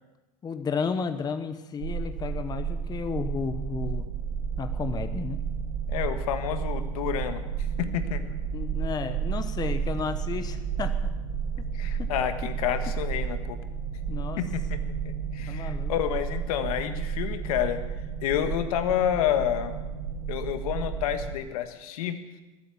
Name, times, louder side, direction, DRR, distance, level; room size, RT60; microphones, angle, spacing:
voice 1, 0.4-4.1 4.6-5.4 8.5-10.9 14.1-14.4 15.5-15.9, left 5 dB, 20° left, 9 dB, 1.0 m, -32 dB
sound 1, 1.8-21.4, right 7 dB, 70° right, 3.5 m, -32 dB
voice 2, 5.9-8.3 11.7-13.6 14.4-14.8 15.0-17.8 18.2-19.8 20.3-22.4, left 10 dB, 75° left, 9 dB, 1.6 m, -29 dB
21.0 x 8.5 x 7.1 m, 1.1 s
supercardioid pair, 120°, 19 cm